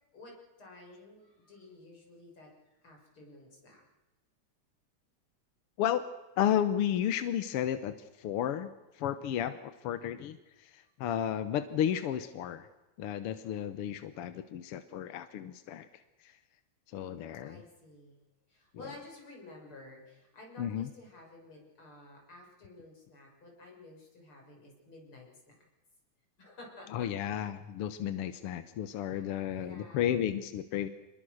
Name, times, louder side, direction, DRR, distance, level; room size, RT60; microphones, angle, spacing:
voice 1, 0.1-3.8 17.4-18.2 18.5-25.6 26.4-27.1 28.8-30.2, left 2 dB, 40° left, 0 dB, 7.2 m, -52 dB
voice 2, 6.4-8.7 9.0-10.4 10.6-12.7 13.0-15.9 16.9-17.6 20.6-20.9 26.9-30.9, left 10 dB, 65° left, 11 dB, 1.5 m, -32 dB
27.0 x 21.5 x 6.5 m, 1.1 s
omnidirectional pair, 3.5 m